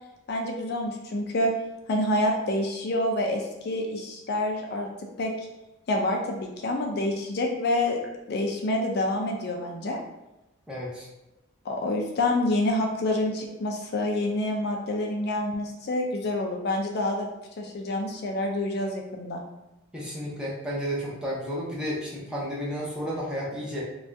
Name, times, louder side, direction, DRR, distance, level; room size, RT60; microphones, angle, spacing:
voice 1, 0.3-1.5 1.9-4.9 5.2-5.3 5.9-8.0 8.3-10.0 11.6-17.3 17.6-19.4, left 1 dB, 55° left, 1 dB, 0.4 m, -27 dB
voice 2, 10.7-11.1 19.9-23.8, equal, 5° right, -6 dB, 0.7 m, -32 dB
2.6 x 2.3 x 3.3 m, 0.98 s
head